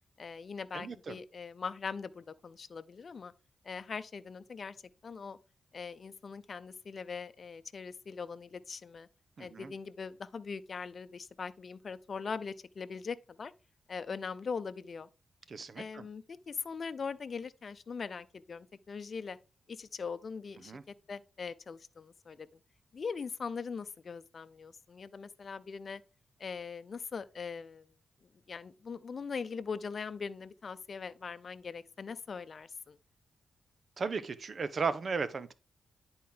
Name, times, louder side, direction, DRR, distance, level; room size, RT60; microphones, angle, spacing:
voice 1, 0.2-3.3 3.6-4.8 5.0-5.4 5.7-9.1 9.4-13.5 13.9-15.1 15.8-19.4 19.7-20.7 21.1-22.5 22.9-26.0 26.4-27.9 28.5-33.0, left 5 dB, 55° left, 0.6 m, -41 dB
voice 2, 0.7-1.2 9.4-9.7 15.5-16.0 20.6-20.8 34.0-35.5, right 5 dB, 55° right, 0.9 m, -35 dB
10.0 x 4.4 x 3.7 m
cardioid pair, 70°, 0 cm